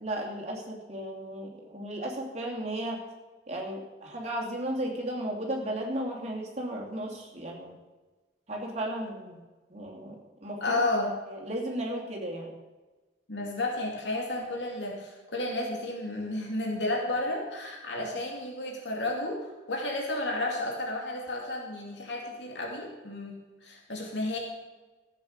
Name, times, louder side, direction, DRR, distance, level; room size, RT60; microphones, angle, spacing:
voice 1, 0.0-3.0 3.5-7.7 8.5-9.4 9.7-10.8 11.3-12.5 18.0-18.2, right 1 dB, 35° right, -1 dB, 2.8 m, -35 dB
voice 2, 10.6-11.1 13.3-23.3 23.6-24.4, left 2 dB, 80° left, 0 dB, 2.6 m, -32 dB
14.5 x 8.0 x 6.5 m, 1.2 s
head